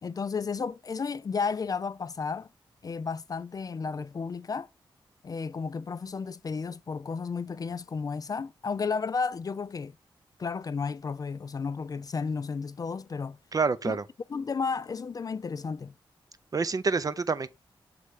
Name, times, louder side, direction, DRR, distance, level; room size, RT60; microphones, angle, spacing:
voice 1, 0.0-2.5 2.8-4.7 5.2-9.9 10.4-13.4 13.8-14.0 14.3-15.9, left 5 dB, 40° left, 0.3 m, -33 dB
voice 2, 13.5-14.0 16.5-17.5, right 4 dB, 40° right, 0.5 m, -27 dB
6.6 x 3.2 x 4.8 m
wide cardioid pair, 90°, 9 cm